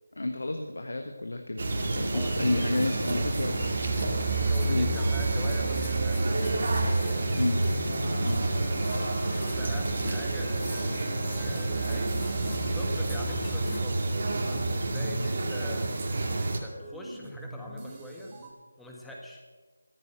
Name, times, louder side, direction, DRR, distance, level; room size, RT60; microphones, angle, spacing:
voice 1, 0.2-1.7 1.9-3.8 4.7-4.9 7.4-7.6 8.2-8.5, left 2 dB, 70° left, 5 dB, 1.5 m, -30 dB
sound 1, 1.6-16.6, right 2 dB, 45° right, 2.4 m, -28 dB
voice 2, 2.1-2.8 4.3-7.4 8.4-11.1 11.4-12.3 12.7-18.4 18.8-19.4, equal, 5° left, -2 dB, 1.6 m, -44 dB
sound 2, 2.2-13.8, left 3 dB, 25° left, 2.0 m, -42 dB
sound 3, 7.6-18.5, right 2 dB, 20° right, 2.4 m, -43 dB
14.0 x 14.0 x 6.2 m, 1.3 s
figure-of-eight pair, 165°, 0 cm